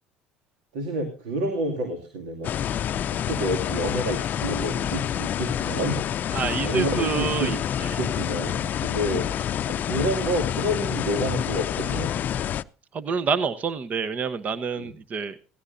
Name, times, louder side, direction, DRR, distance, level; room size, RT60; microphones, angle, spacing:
voice 1, 0.7-2.5 3.3-6.3 6.6-7.6 8.0-9.3 9.7-12.1 14.8-14.9, right 1 dB, 90° right, 5 dB, 2.5 m, -29 dB
sound 1, 2.4-12.6, left 10 dB, 50° left, 0.5 m, -28 dB
voice 2, 6.3-8.0 12.9-15.4, right 5 dB, 40° right, 13 dB, 1.1 m, -27 dB
17.0 x 16.0 x 2.7 m, 0.36 s
supercardioid pair, 90°, 4 cm